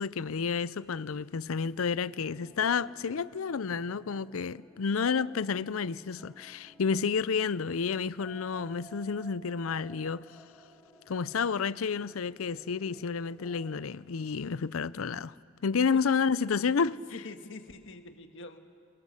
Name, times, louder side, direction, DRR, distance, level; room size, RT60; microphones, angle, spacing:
voice 1, 0.0-10.2 11.1-15.3 15.6-16.9, left 5 dB, 85° left, 0.5 m, -30 dB
sound 1, 2.1-13.9, right 1 dB, 5° left, 4.1 m, -56 dB
voice 2, 17.1-18.6, left 2 dB, 60° left, 1.6 m, -45 dB
28.0 x 23.0 x 6.6 m
head